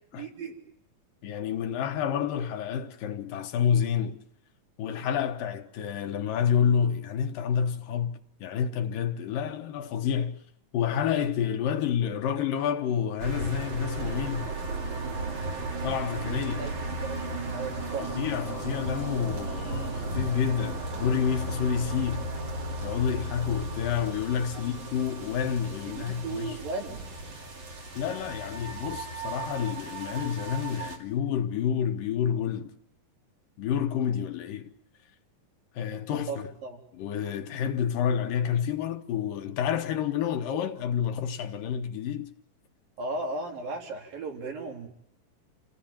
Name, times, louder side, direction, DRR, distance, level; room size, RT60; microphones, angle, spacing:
voice 1, 0.1-0.6 16.6-16.8 17.0-18.1 25.9-27.1 36.3-36.8 43.0-44.9, right 3 dB, 80° right, 5.4 m, -36 dB
voice 2, 1.2-4.2 4.8-10.4 10.7-14.5 15.8-16.7 18.0-22.3 22.8-26.6 28.0-32.7 33.6-34.7 35.8-36.5 36.9-42.3, left 8 dB, 75° left, 3.0 m, -29 dB
sound 1, 13.2-31.0, right 2 dB, 60° right, 4.2 m, -35 dB
28.5 x 17.0 x 8.8 m
omnidirectional pair, 4.0 m